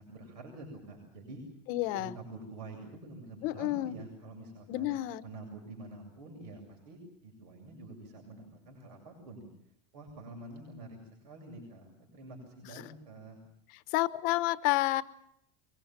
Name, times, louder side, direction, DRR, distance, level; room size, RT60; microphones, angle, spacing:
voice 1, 0.0-1.4 1.7-4.9 5.2-9.5 9.9-13.4, right 2 dB, 85° right, 2 dB, 7.5 m, -47 dB
voice 2, 1.7-2.1 3.4-4.0 4.7-5.2 13.9-15.0, left 17 dB, 45° left, 15 dB, 1.0 m, -29 dB
23.5 x 22.0 x 7.4 m, 0.72 s
supercardioid pair, 170°, 20 cm